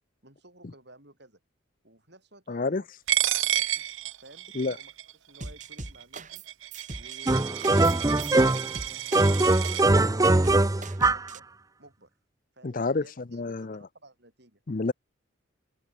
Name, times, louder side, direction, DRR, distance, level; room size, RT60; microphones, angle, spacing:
voice 1, 0.2-1.4 1.8-3.9 4.2-4.9 5.3-6.4 6.9-8.6 9.2-11.4 11.8-12.1 12.5-14.6, right 1 dB, 55° right, 7.3 m, -54 dB
voice 2, 2.5-2.8 4.5-4.8 12.6-13.8 14.7-14.9, left 3 dB, 40° left, 0.5 m, -29 dB
Coin (dropping), 3.1-9.8, right 13 dB, 70° right, 1.0 m, -31 dB
sound 1, 5.4-6.5 6.7-11.4, right 2 dB, 35° right, 2.7 m, -40 dB
sound 2, 7.3-8.8 9.1-11.3, right 2 dB, 15° right, 0.6 m, -22 dB
open air
head